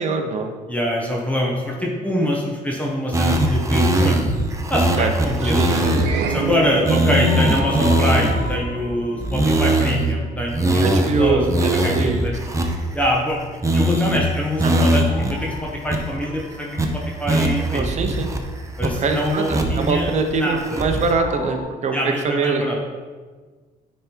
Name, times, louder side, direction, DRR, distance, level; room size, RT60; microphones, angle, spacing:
voice 1, 0.0-0.5 5.0-5.1 5.6-5.9 10.8-12.4 14.6-14.9 17.7-18.3 19.0-22.6, right 4 dB, 45° right, 4 dB, 0.9 m, -23 dB
voice 2, 0.7-4.2 4.7-5.9 6.3-11.4 11.8-12.3 12.9-13.4 13.7-18.0 18.8-20.9 21.9-22.8, equal, 10° left, -3 dB, 1.2 m, -24 dB
sound 1, 3.1-6.1 6.5-6.6 6.8-8.6 9.2-10.1 10.5-13.3 13.6-14.2 14.6-15.3 15.6-15.7 15.9-16.4 16.8-16.9 17.3-18.4 18.8-19.9 20.3-21.1, right 1 dB, 20° right, 0.8 m, -20 dB
sound 2, 5.4-9.9, right 6 dB, 80° right, 0.8 m, -30 dB
sound 3, 7.2-10.2 15.1-17.2 21.1-21.6, left 3 dB, 70° left, 2.0 m, -36 dB
9.2 x 3.6 x 4.6 m, 1.4 s
cardioid pair, 110°, 17 cm